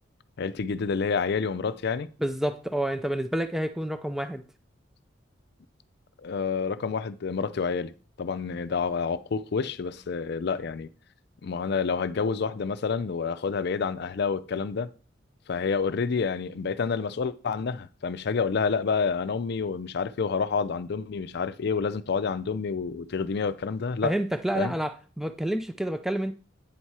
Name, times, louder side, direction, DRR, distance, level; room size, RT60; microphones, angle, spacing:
voice 1, 0.4-2.1 6.2-7.9 8.2-10.9 11.4-14.9 15.5-24.1 24.5-24.7, left 5 dB, 60° left, 0.5 m, -28 dB
voice 2, 2.2-4.4 24.0-26.3, right 1 dB, ahead, 0.4 m, -29 dB
8.9 x 4.3 x 4.7 m
head